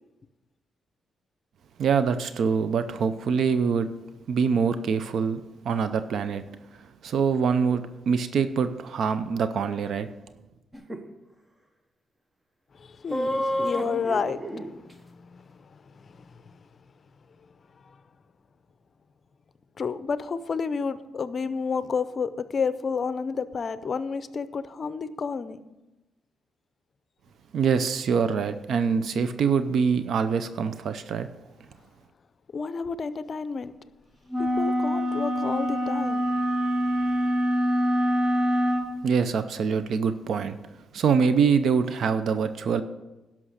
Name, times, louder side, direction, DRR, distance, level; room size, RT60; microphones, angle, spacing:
voice 1, 1.8-3.9 4.3-6.4 7.0-10.1 27.5-31.3 39.0-40.6 40.9-42.8, right 6 dB, 70° right, 11 dB, 0.5 m, -24 dB
sound 1, 10.7-11.0 13.1-14.7, equal, 15° right, 1.0 m, -29 dB
voice 2, 12.7-16.6 17.8-18.0 19.8-25.6 32.5-33.7 34.4-36.4 36.8-37.3, left 5 dB, 45° left, 14 dB, 0.6 m, -31 dB
sound 2, 34.3-38.9, equal, 40° right, 1.5 m, -25 dB
11.5 x 6.0 x 6.5 m, 1.0 s
cardioid pair, 90°, 0 cm